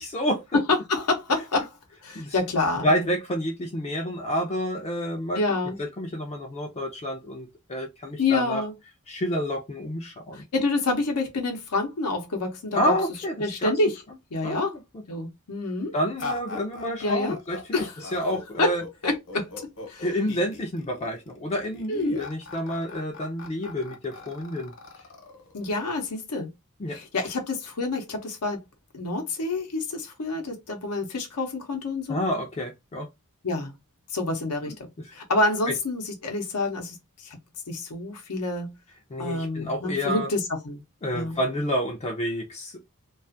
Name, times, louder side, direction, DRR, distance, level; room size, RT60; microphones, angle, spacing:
voice 1, 0.0-0.6 2.2-2.4 2.8-5.4 5.8-8.6 9.1-10.5 12.8-13.7 14.4-14.6 14.9-15.0 15.9-18.8 20.0-24.7 26.8-27.0 32.1-33.1 34.7-34.8 35.7-35.8 39.1-40.3 41.0-42.8, equal, 30° left, 0.4 m, -29 dB
voice 2, 0.7-1.7 2.0-3.1 5.3-5.8 8.2-8.7 10.3-12.8 13.4-13.9 14.3-14.7 15.1-15.9 17.0-17.4 17.7-17.9 18.6-18.7 19.0-19.5 19.9-20.1 21.9-22.3 25.5-26.5 26.9-28.6 28.9-32.2 33.4-33.7 34.1-34.7 35.1-37.4 37.7-38.7 39.2-40.8 41.1-41.4, left 2 dB, 85° left, 0.7 m, -27 dB
sound 1, 16.2-26.1, left 3 dB, 55° left, 0.8 m, -40 dB
2.4 x 2.3 x 2.5 m
head